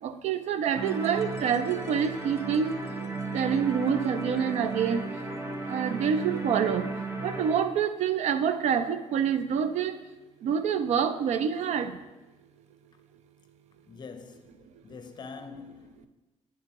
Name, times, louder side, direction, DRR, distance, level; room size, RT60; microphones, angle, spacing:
voice 1, 0.0-2.8 3.3-5.0 5.7-6.9 7.2-9.9 10.4-11.9, right 7 dB, 75° right, 0.4 m, -27 dB
sound 1, 0.7-7.6, right 3 dB, 25° right, 0.7 m, -35 dB
voice 2, 13.8-16.1, left 4 dB, 40° left, 0.6 m, -45 dB
9.6 x 3.5 x 2.9 m
cardioid pair, 105°, 12 cm